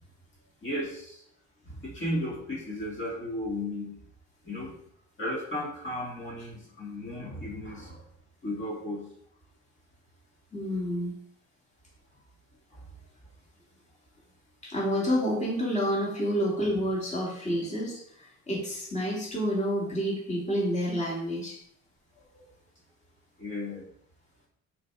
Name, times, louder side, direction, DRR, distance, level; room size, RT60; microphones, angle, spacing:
voice 1, 0.6-1.2 1.6-3.9 4.4-4.7 5.2-8.0 8.4-9.1 10.7-10.8 12.7-12.8 23.4-23.8, left 1 dB, 40° left, -4 dB, 2.5 m, -35 dB
voice 2, 10.5-11.1 14.6-21.6, equal, 25° left, -4 dB, 2.5 m, -29 dB
6.6 x 4.3 x 4.9 m, 0.68 s
cardioid pair, 90°, 30 cm